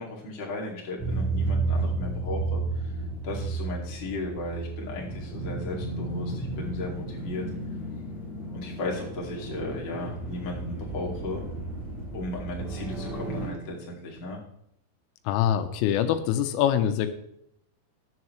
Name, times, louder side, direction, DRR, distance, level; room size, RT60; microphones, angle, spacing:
voice 1, 0.0-7.4 8.5-11.4 12.1-14.4, left 2 dB, 35° left, -3 dB, 1.8 m, -36 dB
sound 1, 1.0-13.5, right 2 dB, ahead, 3.7 m, -32 dB
voice 2, 15.3-17.1, left 10 dB, 90° left, 8 dB, 3.5 m, -24 dB
20.5 x 7.2 x 3.2 m, 0.76 s
omnidirectional pair, 5.8 m